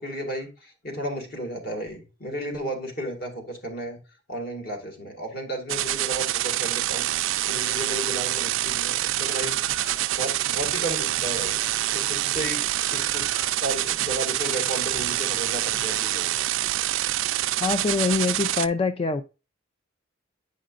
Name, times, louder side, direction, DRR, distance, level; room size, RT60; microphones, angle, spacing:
voice 1, 0.0-4.0 4.3-9.6 10.1-11.6 11.9-13.3 13.6-16.3, right 1 dB, 50° left, 2.1 m, -33 dB
sound 1, 5.7-18.7, right 14 dB, 75° right, 0.4 m, -26 dB
Screaming, 9.2-16.1, equal, 75° left, 3.6 m, -44 dB
voice 2, 17.6-19.2, left 4 dB, 30° left, 0.3 m, -24 dB
8.4 x 5.1 x 2.4 m
head